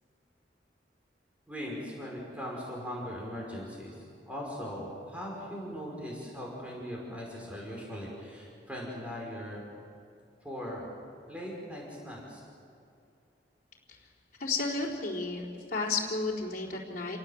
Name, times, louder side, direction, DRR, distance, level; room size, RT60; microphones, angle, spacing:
voice 1, 1.5-9.6 10.4-10.9 11.3-12.4, equal, 5° right, -3 dB, 5.5 m, -39 dB
voice 2, 14.4-17.2, left 3 dB, 50° left, -4 dB, 4.2 m, -32 dB
29.0 x 18.0 x 8.0 m, 2.5 s
head